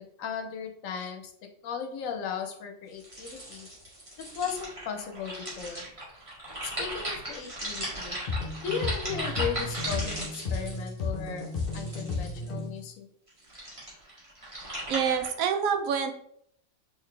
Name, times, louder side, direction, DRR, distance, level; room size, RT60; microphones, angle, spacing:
voice 1, 0.2-1.3 1.6-3.7 4.2-5.9 6.6-8.2 8.6-11.5 11.7-13.1, left 7 dB, 80° left, 5 dB, 1.0 m, -36 dB
sound 1, 3.0-12.6 13.3-15.3, right 1 dB, 25° right, 1.4 m, -37 dB
sound 2, 8.3-12.8, left 3 dB, 50° left, 0.8 m, -33 dB
voice 2, 14.9-16.1, right 7 dB, 85° right, 7 dB, 1.0 m, -26 dB
3.9 x 3.0 x 3.2 m, 0.70 s
omnidirectional pair, 1.4 m